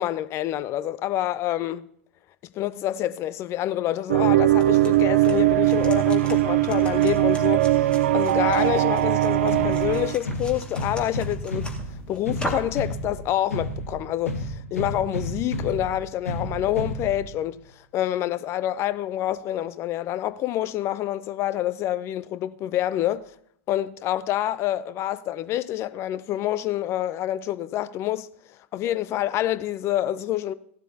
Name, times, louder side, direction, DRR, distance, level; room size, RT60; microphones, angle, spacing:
voice 1, 0.0-1.9 2.5-11.7 12.1-17.6 17.9-23.3 23.7-28.3 28.7-30.5, left 13 dB, 35° left, 0.5 m, -27 dB
sound 1, 4.1-10.2, right 15 dB, 65° right, 0.7 m, -20 dB
sound 2, 4.5-12.8, left 1 dB, 15° left, 2.0 m, -40 dB
sound 3, 9.5-17.5, equal, 85° left, 1.5 m, -32 dB
16.0 x 12.0 x 2.8 m
figure-of-eight pair, 95°, 7 cm